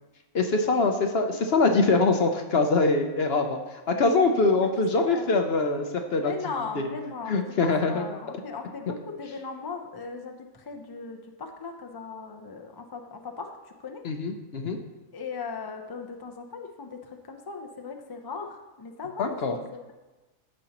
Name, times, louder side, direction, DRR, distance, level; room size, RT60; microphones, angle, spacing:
voice 1, 0.3-6.3 6.8-6.9 7.3-8.1 14.0-14.8 19.2-19.6, left 3 dB, 55° left, 5 dB, 0.7 m, -23 dB
voice 2, 4.9-5.3 6.2-14.0 15.1-19.9, left 4 dB, 35° left, 3 dB, 0.3 m, -38 dB
15.0 x 5.2 x 2.9 m, 1.2 s
omnidirectional pair, 1.5 m